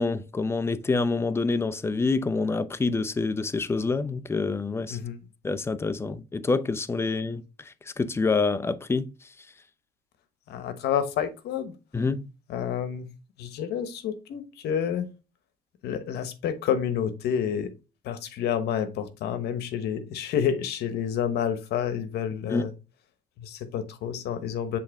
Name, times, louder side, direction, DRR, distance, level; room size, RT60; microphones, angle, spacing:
voice 1, 0.0-5.0 5.4-9.1 11.9-12.3 22.5-22.6, left 3 dB, 15° left, 0.6 m, -27 dB
voice 2, 4.9-5.3 10.5-11.7 12.5-13.1 13.4-15.1 15.8-17.7 18.0-22.7 23.4-24.8, left 8 dB, 75° left, 1.1 m, -29 dB
7.5 x 3.5 x 3.5 m
cardioid pair, 110°, 17 cm